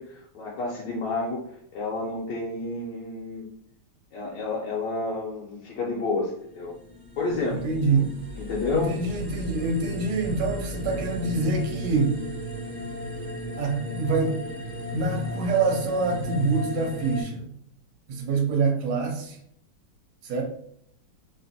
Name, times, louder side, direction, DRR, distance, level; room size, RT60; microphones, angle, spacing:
voice 1, 0.0-1.4 1.7-3.5 4.1-6.7 7.2-8.0 8.4-9.0, left 3 dB, 75° left, -3 dB, 1.2 m, -30 dB
sound 1, 6.6-17.2, left 2 dB, 45° right, 0.7 m, -35 dB
voice 2, 7.6-8.1 8.7-12.1 13.6-14.4 14.9-17.5 18.1-19.4 20.2-20.4, right 4 dB, 65° right, 1 dB, 1.2 m, -25 dB
3.1 x 2.5 x 2.7 m, 0.69 s
omnidirectional pair, 2.1 m